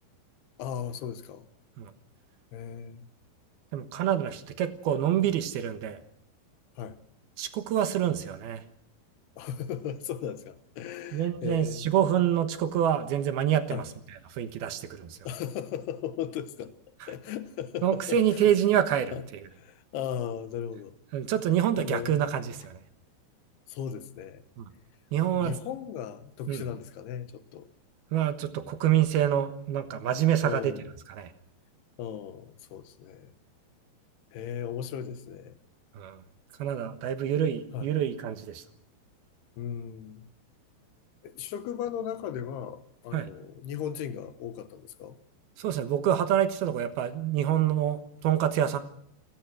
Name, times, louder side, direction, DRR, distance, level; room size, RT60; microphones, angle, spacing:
voice 1, 0.6-1.5 2.5-3.1 6.8-7.0 9.4-11.9 13.7-13.9 15.2-16.7 17.1-18.5 19.1-19.3 19.5-20.9 21.8-22.3 23.7-24.4 25.2-27.7 30.4-30.9 32.0-33.3 34.3-35.6 37.7-37.9 39.6-40.2 41.2-45.2, left 9 dB, 75° left, 12 dB, 3.1 m, -37 dB
voice 2, 3.7-6.0 7.4-8.6 11.1-13.8 14.3-15.2 17.8-19.1 21.1-22.8 24.6-24.7 25.1-25.5 26.5-26.6 28.1-30.7 31.1-31.3 35.9-36.2 36.6-38.6 43.1-43.3 45.6-48.8, right 10 dB, 70° right, 10 dB, 3.0 m, -26 dB
29.0 x 16.5 x 6.2 m, 0.69 s
omnidirectional pair, 4.8 m